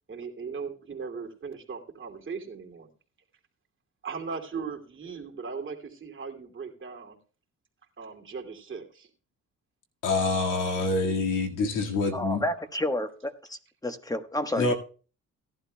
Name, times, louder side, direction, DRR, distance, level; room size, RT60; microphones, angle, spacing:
voice 1, 0.1-2.9 4.0-7.2 8.0-9.1, right 5 dB, 40° right, 2.6 m, -38 dB
voice 2, 10.0-12.4 14.6-14.7, left 3 dB, 85° left, 2.0 m, -26 dB
voice 3, 12.1-13.6 13.8-14.7, left 1 dB, 10° left, 1.2 m, -30 dB
17.5 x 11.5 x 2.3 m
cardioid pair, 90°, 30 cm